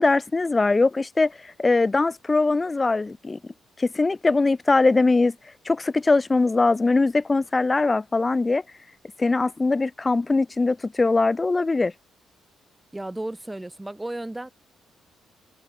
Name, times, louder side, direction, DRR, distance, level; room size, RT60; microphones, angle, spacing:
voice 1, 0.0-3.4 3.8-5.4 5.7-8.6 9.2-11.9, left 3 dB, 25° left, 0.5 m, -21 dB
voice 2, 12.9-14.5, right 1 dB, 10° right, 2.0 m, -33 dB
cardioid pair, 90°, 0 cm